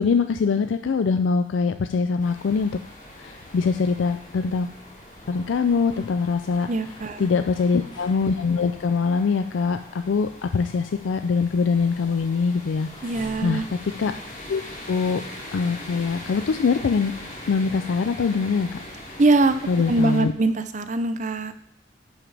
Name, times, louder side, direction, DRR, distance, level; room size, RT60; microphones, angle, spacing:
voice 1, 0.0-2.8 3.2-4.7 5.3-6.7 7.2-12.9 13.4-13.6 14.0-14.1 14.5-14.6 14.9-15.2 15.5-17.1 17.5-18.7 19.7-20.3, left 5 dB, 85° left, 9 dB, 0.4 m, -23 dB
sound 1, 2.2-20.2, left 1 dB, 40° left, 2.2 m, -42 dB
sound 2, 3.4-8.8 9.2-9.3 9.7-11.3 11.6-14.6, left 1 dB, 25° left, 1.3 m, -49 dB
voice 2, 6.7-7.3 13.0-13.6 19.2-19.6 19.9-21.5, right 2 dB, 40° right, 11 dB, 0.5 m, -22 dB
9.9 x 7.0 x 3.4 m, 0.66 s
head